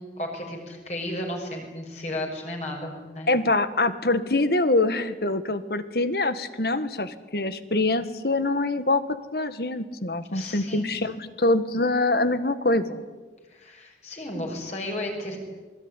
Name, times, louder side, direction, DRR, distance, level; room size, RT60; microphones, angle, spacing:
voice 1, 0.0-3.3 10.3-10.9 13.5-15.4, left 1 dB, 40° left, 1 dB, 6.4 m, -34 dB
voice 2, 3.3-9.0 9.3-13.0, left 2 dB, 60° left, 12 dB, 1.7 m, -24 dB
27.5 x 21.0 x 9.9 m, 1.3 s
head